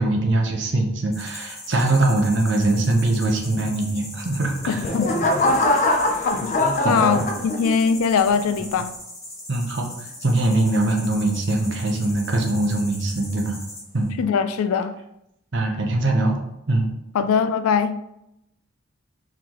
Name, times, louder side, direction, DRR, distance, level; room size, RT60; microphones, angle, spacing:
voice 1, 0.0-4.9 6.8-7.3 9.5-13.6 13.9-14.1 15.5-16.4 16.7-16.9, right 2 dB, 55° right, 0.7 m, -22 dB
sound 1, 1.1-14.1, left 1 dB, 15° left, 0.9 m, -39 dB
sound 2, 4.4-7.9 8.5-8.8, left 1 dB, 35° left, 0.6 m, -22 dB
voice 2, 4.7-5.1 6.2-6.6 6.9-8.9 14.2-14.9 17.1-18.0, left 6 dB, 90° left, 0.4 m, -21 dB
4.5 x 3.8 x 3.0 m
head